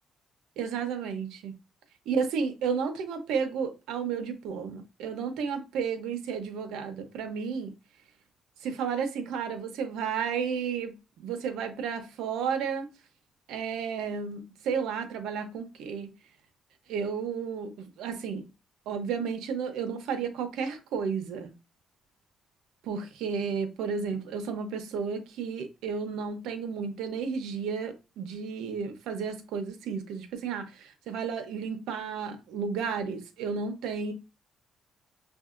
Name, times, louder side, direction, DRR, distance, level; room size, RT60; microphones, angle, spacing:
voice 1, 0.6-1.5 2.1-7.7 8.6-12.9 13.5-16.1 16.9-18.5 18.9-21.5 22.8-34.1, right 6 dB, 90° right, 0.7 m, -32 dB
6.3 x 2.6 x 2.4 m
cardioid pair, 90°, 0 cm